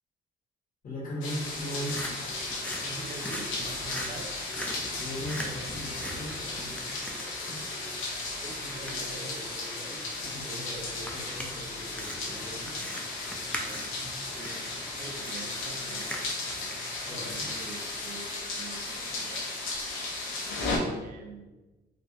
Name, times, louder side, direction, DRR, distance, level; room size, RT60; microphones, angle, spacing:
voice 1, 0.8-2.0 4.9-6.7 7.3-7.6 8.8-12.9 17.0-17.5, equal, 45° left, -5 dB, 1.2 m, -39 dB
sound 1, 1.2-20.8, left 3 dB, 90° left, 0.6 m, -35 dB
sound 2, 1.5-17.1, equal, 5° left, 0.4 m, -42 dB
voice 2, 2.8-4.3 8.4-9.5 13.5-14.6 15.0-16.1 17.1-19.5 21.0-21.5, right 3 dB, 45° right, 2 dB, 0.6 m, -45 dB
3.2 x 2.1 x 2.6 m, 1.1 s
cardioid pair, 90°, 20 cm